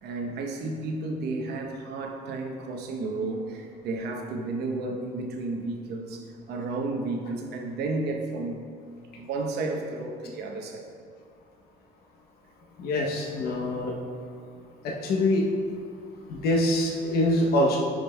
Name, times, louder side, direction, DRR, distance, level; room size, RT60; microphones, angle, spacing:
voice 1, 0.0-8.6 9.1-10.9, right 3 dB, 75° right, 2 dB, 0.8 m, -32 dB
voice 2, 12.8-13.9 14.8-15.4 16.3-17.8, left 1 dB, 65° left, -1 dB, 0.8 m, -24 dB
10.5 x 5.1 x 2.2 m, 2.3 s
cardioid pair, 110°, 17 cm